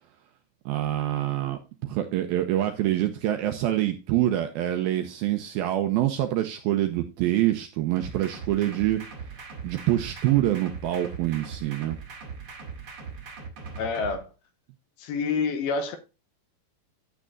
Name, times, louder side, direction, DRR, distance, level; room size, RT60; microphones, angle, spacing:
voice 1, 0.7-9.0 9.6-12.0, right 13 dB, 90° right, 2.1 m, -26 dB
sound 1, 7.9-14.1, right 5 dB, 40° right, 2.2 m, -40 dB
voice 2, 13.8-14.3 15.0-16.0, left 5 dB, 75° left, 2.7 m, -27 dB
10.0 x 8.4 x 2.5 m
omnidirectional pair, 4.9 m